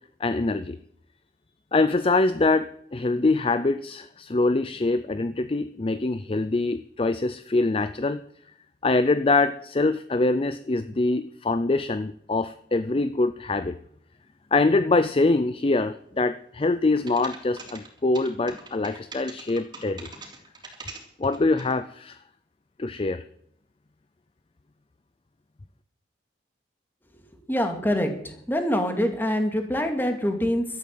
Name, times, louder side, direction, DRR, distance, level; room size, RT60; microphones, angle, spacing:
voice 1, 0.2-0.8 1.7-8.2 8.8-13.7 14.5-20.1 21.2-22.2 22.8-23.2, left 3 dB, 30° left, 12 dB, 0.5 m, -24 dB
sound 1, 17.0-21.7, right 4 dB, 25° right, 3.5 m, -42 dB
voice 2, 27.5-30.6, equal, 10° left, 4 dB, 2.3 m, -25 dB
12.5 x 10.5 x 7.7 m, 0.69 s
head